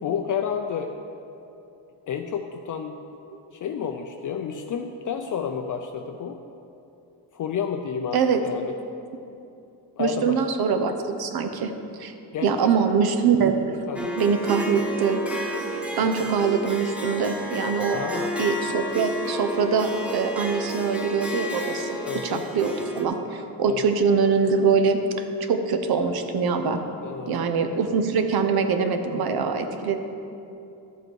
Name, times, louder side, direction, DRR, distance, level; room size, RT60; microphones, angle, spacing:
voice 1, 0.0-0.9 2.1-2.9 3.5-6.4 7.3-8.7 10.0-10.4 12.3-12.7 13.9-14.2 16.0-16.3 17.9-18.3 22.0-22.4 23.6-23.8 27.0-27.4, left 7 dB, 45° left, 4 dB, 0.5 m, -30 dB
voice 2, 10.0-11.7 12.0-12.1 12.4-13.8 14.2-15.2 16.0-18.0 18.4-22.0 22.2-26.8 27.3-30.0, right 5 dB, 60° right, 7 dB, 0.8 m, -23 dB
Harp, 13.9-23.0, equal, 5° right, 0.8 m, -31 dB
12.0 x 7.7 x 4.6 m, 2.8 s
cardioid pair, 155°, 43 cm